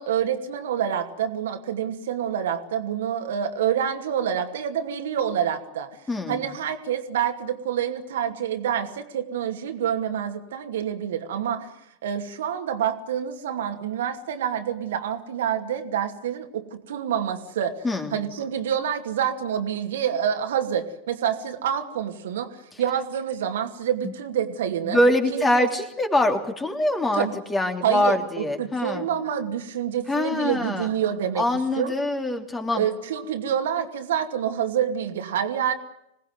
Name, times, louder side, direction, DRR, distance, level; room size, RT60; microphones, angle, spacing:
voice 1, 0.0-5.9 6.3-11.7 12.0-17.7 18.1-25.0 25.3-25.7 27.2-27.3 27.8-31.4 31.8-31.9 32.7-35.7, right 9 dB, 60° right, 5 dB, 2.5 m, -27 dB
voice 2, 6.1-6.4 17.8-18.2 24.0-24.1 24.8-29.1 30.1-30.9 31.4-32.8, left 1 dB, 15° left, 5 dB, 3.2 m, -24 dB
26.5 x 19.0 x 9.4 m, 0.81 s
figure-of-eight pair, 90°, 0 cm